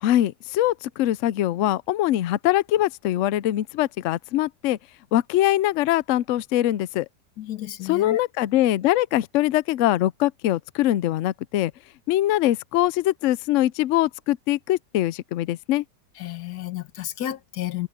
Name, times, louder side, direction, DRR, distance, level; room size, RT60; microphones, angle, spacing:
voice 1, 0.0-4.8 5.1-7.1 7.8-11.7 12.1-15.8, left 14 dB, 85° left, 0.6 m, -22 dB
voice 2, 7.4-8.2 16.2-17.9, left 12 dB, 70° left, 1.4 m, -32 dB
omnidirectional pair, 1.9 m